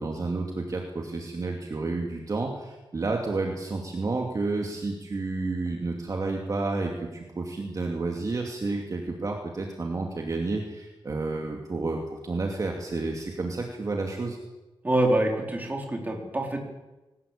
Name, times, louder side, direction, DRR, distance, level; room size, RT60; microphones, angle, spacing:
voice 1, 0.0-14.4, right 3 dB, 40° right, 1 dB, 2.6 m, -30 dB
voice 2, 14.8-16.6, right 1 dB, 20° right, 1 dB, 4.4 m, -25 dB
22.0 x 19.0 x 8.6 m, 1.1 s
wide cardioid pair, 150°, 9 cm